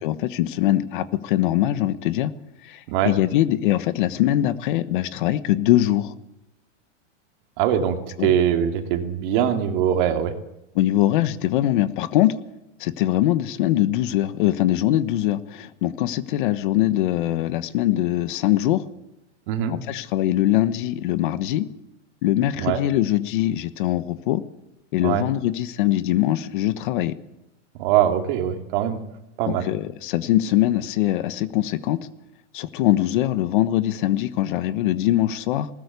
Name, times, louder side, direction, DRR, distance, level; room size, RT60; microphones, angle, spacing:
voice 1, 0.0-2.3 2.6-6.1 8.2-8.3 10.7-12.4 12.8-18.8 19.7-21.7 22.2-24.4 24.9-27.2 29.5-32.0 32.5-35.7, left 14 dB, 45° left, 14 dB, 1.1 m, -22 dB
voice 2, 7.6-10.3 19.5-19.7 22.6-22.8 25.0-25.3 27.8-29.0 29.4-29.7, right 10 dB, 40° right, 6 dB, 2.7 m, -22 dB
20.5 x 19.0 x 8.3 m, 0.89 s
supercardioid pair, 165°, 37 cm